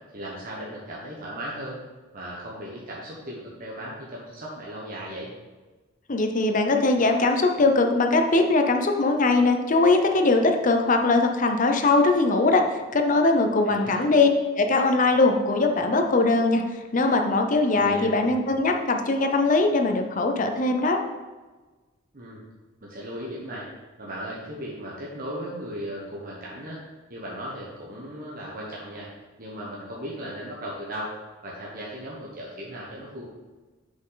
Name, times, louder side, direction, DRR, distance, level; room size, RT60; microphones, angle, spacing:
voice 1, 0.1-1.8 2.1-5.3 13.6-14.1 17.7-18.2 22.1-22.4 22.8-23.7 24.0-26.8 27.1-29.1 29.4-31.1 31.4-33.2, equal, 45° right, -5 dB, 1.1 m, -36 dB
voice 2, 6.1-21.0, left 3 dB, 40° left, 5 dB, 0.6 m, -21 dB
6.6 x 5.3 x 3.9 m, 1.3 s
head